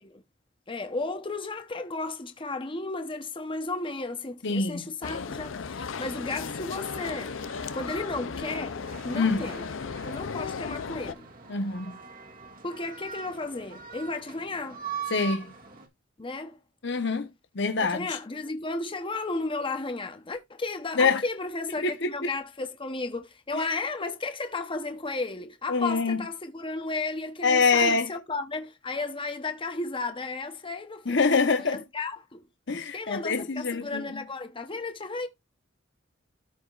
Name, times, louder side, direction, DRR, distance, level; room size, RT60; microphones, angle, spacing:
voice 1, 0.7-7.3 7.7-9.7 10.0-11.2 12.6-14.8 16.2-16.6 17.8-32.4 32.9-35.3, left 3 dB, 25° left, 0.9 m, -34 dB
voice 2, 4.4-4.9 9.1-9.4 11.5-12.0 15.1-15.5 16.8-17.3 17.5-18.2 21.0-21.2 21.8-22.3 23.5-23.6 25.7-26.2 27.4-28.1 31.1-31.8 32.7-34.2, left 4 dB, 65° left, 1.0 m, -25 dB
sound 1, 5.0-11.1, left 5 dB, 80° left, 0.6 m, -36 dB
sound 2, 5.9-15.9, right 6 dB, 50° right, 2.0 m, -43 dB
14.0 x 5.0 x 2.5 m
head